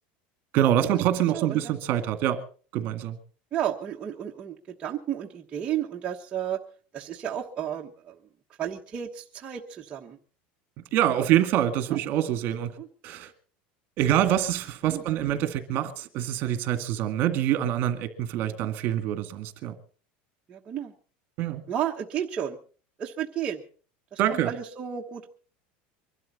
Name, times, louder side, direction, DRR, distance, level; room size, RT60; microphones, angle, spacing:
voice 1, 0.5-2.4 2.7-3.2 10.9-12.7 13.0-13.3 14.0-19.7 21.4-21.6 24.2-24.5, right 11 dB, 45° right, 8 dB, 2.1 m, -25 dB
voice 2, 1.3-1.7 3.5-6.6 6.9-8.2 8.6-10.2 11.9-12.0 12.8-12.9 14.9-15.0 20.5-20.9 21.7-22.6 23.0-23.6 24.1-25.3, right 10 dB, 25° right, -1 dB, 1.2 m, -32 dB
24.0 x 12.5 x 4.2 m, 0.41 s
supercardioid pair, 155°, 5 cm